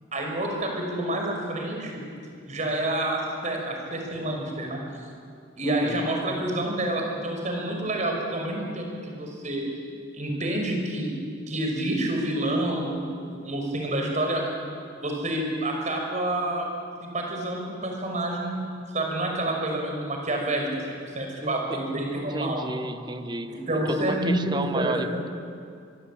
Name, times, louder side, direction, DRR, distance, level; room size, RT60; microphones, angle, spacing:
voice 1, 0.1-2.0 2.5-4.8 5.6-9.6 10.1-11.2 11.5-14.4 15.0-16.7 17.0-18.7 18.9-22.7 23.5-25.2, right 1 dB, 40° right, 1 dB, 5.7 m, -28 dB
voice 2, 5.6-6.0 21.4-21.8 22.1-23.5 23.9-25.1, right 2 dB, 25° right, 9 dB, 1.2 m, -32 dB
24.5 x 22.0 x 8.7 m, 2.3 s
head